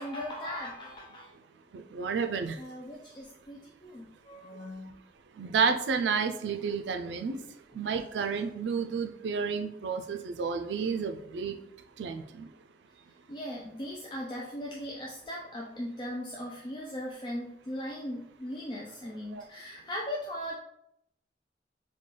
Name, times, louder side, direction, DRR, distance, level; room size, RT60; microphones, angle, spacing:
voice 1, 0.0-1.3 2.6-4.9 13.3-20.6, equal, 25° left, -3 dB, 0.3 m, -38 dB
voice 2, 1.7-2.6 5.4-7.4 7.8-11.6 12.0-12.5 19.3-19.4, right 5 dB, 85° right, 8 dB, 0.4 m, -31 dB
3.6 x 2.3 x 3.2 m, 0.78 s
head